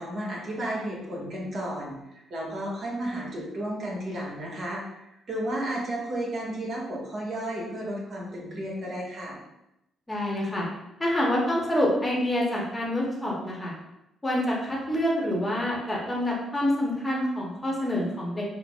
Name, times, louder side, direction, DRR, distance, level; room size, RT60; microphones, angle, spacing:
voice 1, 0.0-4.8 5.3-9.4, right 1 dB, 55° right, -4 dB, 1.2 m, -33 dB
voice 2, 10.1-10.7 11.0-13.7 14.2-18.4, left 1 dB, 15° left, -3 dB, 0.9 m, -27 dB
5.7 x 2.0 x 2.3 m, 0.88 s
cardioid pair, 90°, 0 cm